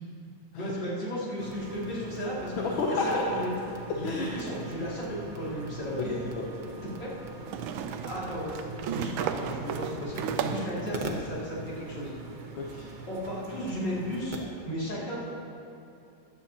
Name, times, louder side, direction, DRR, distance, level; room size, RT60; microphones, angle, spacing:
voice 1, 0.6-2.7 3.0-3.5 3.9-6.2 7.0-7.1 8.0-12.1 13.1-14.4 14.6-15.3, equal, 60° left, -8 dB, 3.4 m, -34 dB
sound 1, 1.4-14.4, right 3 dB, 40° right, 0.7 m, -42 dB
voice 2, 2.6-3.3 4.0-4.4 6.0-6.5 12.6-12.9, left 3 dB, 80° left, -2 dB, 1.8 m, -30 dB
sound 2, 5.5-5.6 7.5-10.8, right 8 dB, 85° right, 1.4 m, -34 dB
16.0 x 11.0 x 2.9 m, 2.7 s
omnidirectional pair, 2.2 m